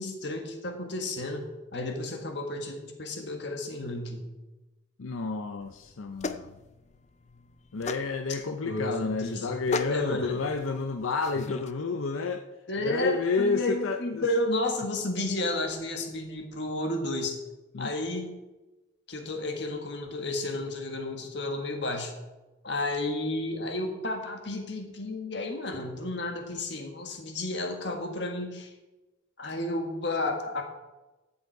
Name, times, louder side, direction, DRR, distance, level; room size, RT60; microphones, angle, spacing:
voice 1, 0.0-4.3 8.6-9.5 9.9-10.4 12.7-17.4 17.8-18.3 19.1-22.1 22.6-28.7 29.4-30.6, left 2 dB, 55° left, 3 dB, 1.6 m, -32 dB
voice 2, 5.0-6.5 7.7-12.4 12.8-14.2 17.7-17.9, left 4 dB, 85° left, 6 dB, 0.6 m, -30 dB
sound 1, 5.6-11.7, left 3 dB, 35° left, 0.4 m, -38 dB
12.5 x 7.3 x 4.7 m, 1.1 s
head